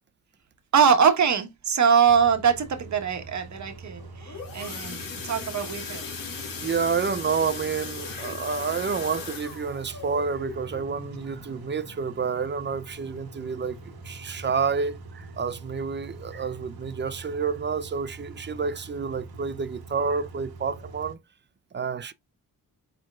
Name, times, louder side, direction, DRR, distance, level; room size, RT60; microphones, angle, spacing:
voice 1, 0.7-6.0, right 7 dB, 50° right, 1.1 m, -22 dB
Car / Idling / Accelerating revving vroom, 2.0-21.1, right 2 dB, 90° right, 1.2 m, -44 dB
sound 1, 4.0-12.7 13.1-13.3 13.6-13.7 14.2-14.3, left 5 dB, 65° left, 1.5 m, -39 dB
voice 2, 6.6-21.2 21.7-22.1, right 5 dB, 30° right, 0.5 m, -29 dB
4.5 x 4.4 x 2.3 m
cardioid pair, 75°, 36 cm